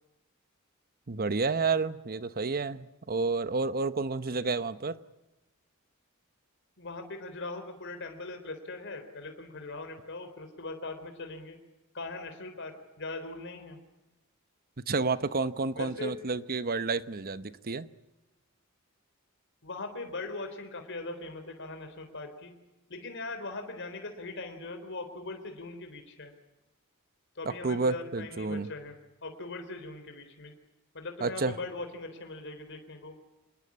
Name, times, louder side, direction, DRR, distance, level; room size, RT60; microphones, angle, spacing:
voice 1, 1.1-5.0 14.9-17.9 27.5-28.7 31.2-31.5, right 4 dB, 45° right, 0.9 m, -30 dB
voice 2, 6.8-11.6 11.9-13.8 15.7-16.2 19.6-22.6 22.9-26.3 27.4-29.0 29.2-30.5 30.9-33.2, left 3 dB, 60° left, 3.9 m, -40 dB
27.0 x 20.5 x 8.6 m
head